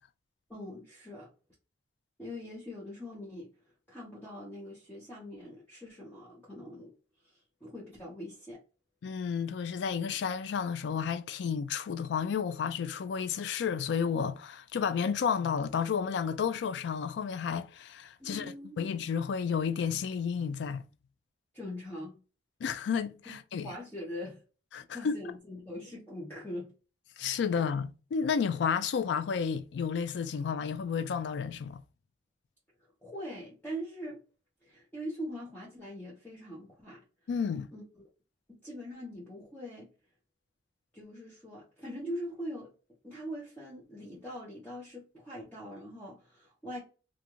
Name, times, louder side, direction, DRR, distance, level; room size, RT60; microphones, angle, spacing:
voice 1, 0.5-1.3 2.2-3.5 3.9-6.9 7.2-8.6 18.2-18.8 21.5-22.2 23.3-23.4 23.6-24.4 24.9-26.7 33.0-34.2 34.6-37.0 37.7-37.8 38.5-39.9 40.9-42.7 43.0-46.8, equal, 10° left, 0.8 m, -42 dB
voice 2, 9.0-18.5 18.8-20.8 22.6-23.7 24.7-25.2 27.2-31.8 37.3-37.7, left 6 dB, 70° left, 0.3 m, -31 dB
2.5 x 2.4 x 2.9 m
head